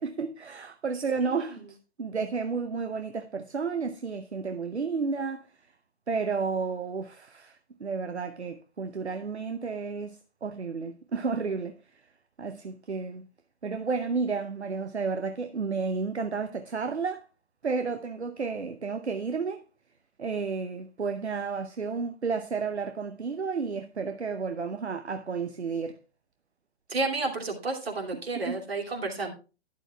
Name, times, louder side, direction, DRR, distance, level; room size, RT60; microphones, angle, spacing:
voice 1, 0.0-5.7 6.1-12.1 12.4-13.3 13.6-17.3 17.6-19.6 20.2-26.0 28.1-28.6, right 5 dB, 85° right, 0.8 m, -32 dB
voice 2, 26.9-29.3, right 3 dB, 65° right, 2.7 m, -31 dB
11.5 x 10.5 x 2.3 m
figure-of-eight pair, 125°, 33 cm